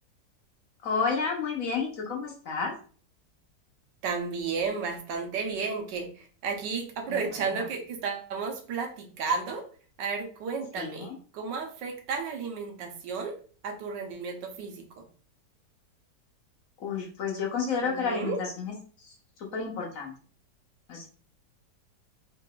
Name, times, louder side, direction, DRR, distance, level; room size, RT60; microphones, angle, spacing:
voice 1, 0.8-2.7 7.1-7.6 10.8-11.1 16.8-18.8 19.0-19.1 19.5-20.1 20.9-21.1, left 5 dB, 60° left, 0 dB, 1.1 m, -31 dB
voice 2, 4.0-9.6 10.0-13.3 13.6-15.1 17.8-18.4, right 5 dB, 90° right, 4 dB, 1.4 m, -33 dB
3.8 x 3.6 x 2.3 m, 0.42 s
omnidirectional pair, 1.9 m